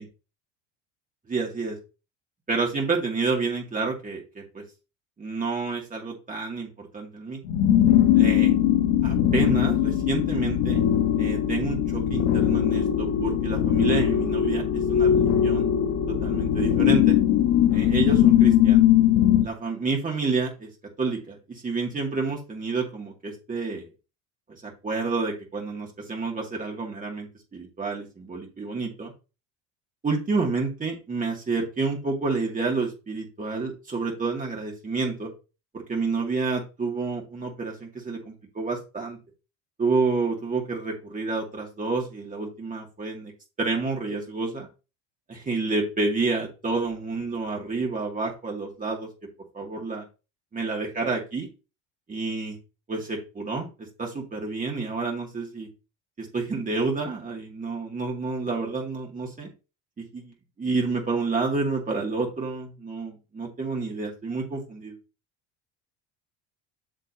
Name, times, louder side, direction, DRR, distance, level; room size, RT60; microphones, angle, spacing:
voice 1, 1.3-1.8 2.5-4.6 5.2-7.4 8.1-8.5 9.0-10.8 11.2-15.6 16.1-17.2 17.7-18.8 19.4-20.7 21.0-23.9 24.6-29.1 30.0-35.3 35.7-39.2 39.8-43.3 43.6-44.7 45.3-49.1 49.5-50.0 50.5-51.5 52.1-52.6 52.9-55.7 56.2-59.5 60.0-65.0, right 4 dB, 25° right, -1 dB, 2.3 m, -29 dB
sound 1, 7.4-19.5, left 10 dB, 70° left, 1.1 m, -20 dB
7.7 x 6.8 x 2.8 m, 0.31 s
supercardioid pair, 105°, 33 cm